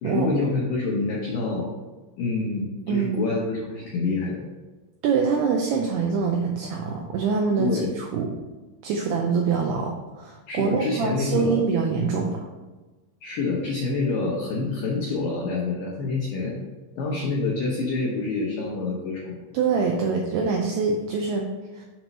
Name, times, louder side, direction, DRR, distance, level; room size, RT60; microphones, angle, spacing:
voice 1, 0.0-1.7 2.2-4.4 7.6-7.9 10.5-11.6 12.0-12.2 13.2-16.6 17.0-19.4, left 3 dB, 90° left, -3 dB, 1.9 m, -27 dB
voice 2, 2.9-3.3 5.0-8.3 8.8-12.4 19.5-21.5 21.7-21.8, right 5 dB, 90° right, 1 dB, 2.3 m, -24 dB
7.6 x 3.0 x 5.3 m, 1.2 s
omnidirectional pair, 5.3 m